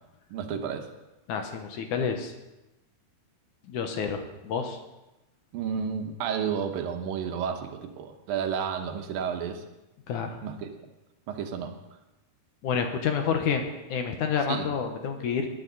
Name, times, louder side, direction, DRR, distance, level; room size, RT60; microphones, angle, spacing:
voice 1, 0.3-0.9 5.5-9.6 10.4-10.7 11.3-11.8 14.4-14.7, right 7 dB, 70° right, 5 dB, 2.6 m, -31 dB
voice 2, 1.3-2.3 3.7-4.8 10.1-10.4 12.6-15.5, left 6 dB, 65° left, 5 dB, 2.2 m, -29 dB
19.0 x 11.5 x 4.0 m, 1.0 s
omnidirectional pair, 4.4 m